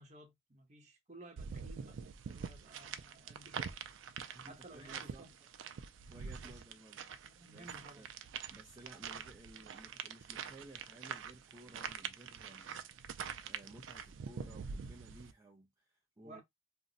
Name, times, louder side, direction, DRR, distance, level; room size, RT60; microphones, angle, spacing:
voice 1, 0.0-2.0 2.3-3.7 4.5-5.3 6.4-6.6 7.2-8.1 16.2-16.4, right 1 dB, 40° right, 1.0 m, -56 dB
sound 1, 1.4-15.3, right 7 dB, 80° right, 0.4 m, -45 dB
voice 2, 4.2-5.3 6.1-7.7 8.0-8.1 8.5-16.4, right 1 dB, 20° right, 0.4 m, -57 dB
2.6 x 2.1 x 3.8 m
head